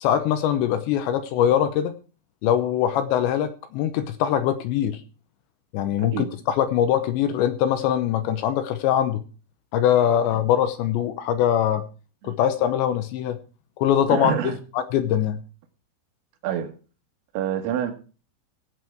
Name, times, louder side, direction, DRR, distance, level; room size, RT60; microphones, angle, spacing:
voice 1, 0.0-1.9 2.4-5.0 5.7-9.2 9.7-11.9 12.2-13.4 13.8-15.4, left 10 dB, 75° left, 11 dB, 2.8 m, -22 dB
voice 2, 14.1-14.6 16.4-16.7 17.3-17.9, right 10 dB, 90° right, 5 dB, 4.1 m, -27 dB
16.5 x 8.1 x 4.5 m, 0.36 s
omnidirectional pair, 5.7 m